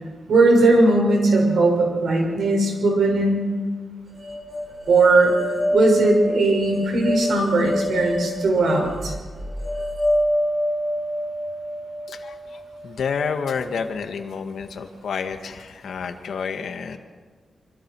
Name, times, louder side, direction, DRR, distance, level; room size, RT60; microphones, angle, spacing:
voice 1, 0.3-3.5 4.9-5.3 5.7-9.1, right 2 dB, 70° right, 1 dB, 6.5 m, -18 dB
sound 1, 4.2-13.3, left 1 dB, 40° right, 6.9 m, -27 dB
voice 2, 12.1-17.0, left 6 dB, 75° left, 6 dB, 1.8 m, -29 dB
26.0 x 25.5 x 4.8 m, 1.5 s
wide cardioid pair, 160°, 0 cm